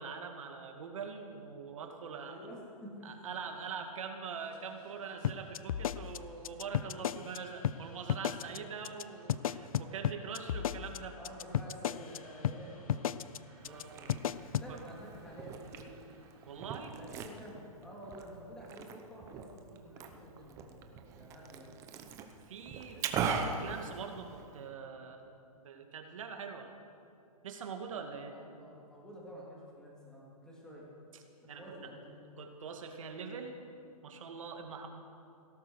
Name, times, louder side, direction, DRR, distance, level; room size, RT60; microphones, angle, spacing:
voice 1, 0.0-2.4 3.0-11.2 13.6-14.0 14.7-14.8 16.5-17.0 22.4-25.2 25.6-26.7 27.4-28.3 31.5-31.6 32.4-33.5 34.0-34.9, right 6 dB, 60° right, 4 dB, 2.2 m, -43 dB
voice 2, 2.2-3.3 8.5-8.7 11.1-13.1 13.5-14.3 14.6-16.0 16.9-21.8 22.9-23.5 28.3-30.9 31.4-32.2, equal, 5° left, -5 dB, 2.9 m, -50 dB
sound 1, 4.4-16.8, right 3 dB, 40° right, 4.1 m, -61 dB
sound 2, 5.2-7.4 7.6-7.8 8.1-8.6 8.8-9.0 9.3-12.2 12.4-12.6 12.9-13.4 13.6-13.8 14.1-14.7, left 10 dB, 65° left, 0.5 m, -33 dB
Liquid, 13.6-24.6, right 6 dB, 15° right, 0.8 m, -41 dB
17.5 x 12.5 x 6.4 m, 2.6 s
hypercardioid pair, 160°, 19 cm